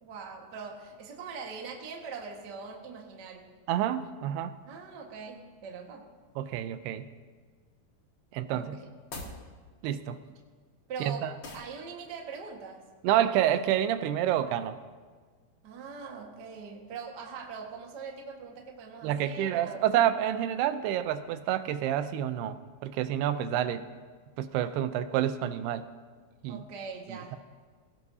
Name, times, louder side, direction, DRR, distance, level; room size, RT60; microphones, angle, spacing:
voice 1, 0.0-3.5 4.7-6.1 8.5-8.9 10.9-12.8 15.6-20.0 23.8-23.9 26.5-27.4, right 5 dB, 60° right, 1 dB, 1.1 m, -42 dB
voice 2, 3.7-4.5 6.4-7.1 8.3-8.8 9.8-10.2 11.0-11.3 13.0-14.8 19.0-22.6 22.8-23.8 24.4-25.9 26.4-26.6 27.1-27.4, right 11 dB, 85° right, 11 dB, 2.7 m, -28 dB
sound 1, 9.0-9.4 11.4-11.8, left 2 dB, 55° left, 1.3 m, -41 dB
22.0 x 18.0 x 2.8 m, 1.5 s
omnidirectional pair, 4.6 m